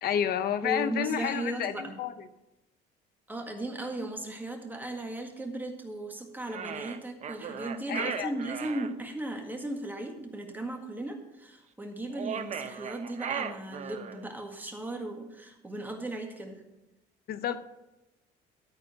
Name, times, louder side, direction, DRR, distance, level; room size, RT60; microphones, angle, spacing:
voice 1, 0.0-2.1 7.9-8.3 17.3-17.6, left 9 dB, 65° left, 11 dB, 0.8 m, -30 dB
voice 2, 0.6-2.0 3.3-16.6, right 1 dB, 10° right, 2 dB, 1.8 m, -36 dB
sound 1, 6.5-8.9 12.1-14.3, right 7 dB, 45° right, 0.7 m, -37 dB
12.5 x 4.3 x 7.9 m, 0.98 s
cardioid pair, 110°, 17 cm